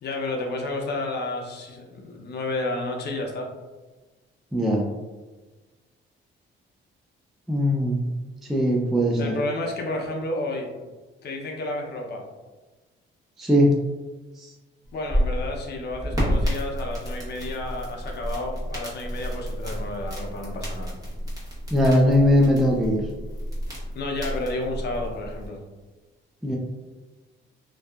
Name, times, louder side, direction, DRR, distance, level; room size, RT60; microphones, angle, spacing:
voice 1, 0.0-3.5 9.2-10.7 11.2-12.2 14.9-20.9 23.9-25.6, left 2 dB, 55° left, 1 dB, 0.5 m, -31 dB
voice 2, 4.5-4.8 7.5-8.1 8.4-9.3 13.4-13.7 14.4-14.5 21.7-23.0 26.4-26.6, equal, ahead, -1 dB, 0.3 m, -20 dB
sound 1, 14.8-25.5, equal, 20° right, 1.1 m, -30 dB
2.6 x 2.3 x 2.2 m, 1.2 s
cardioid pair, 90°, 20 cm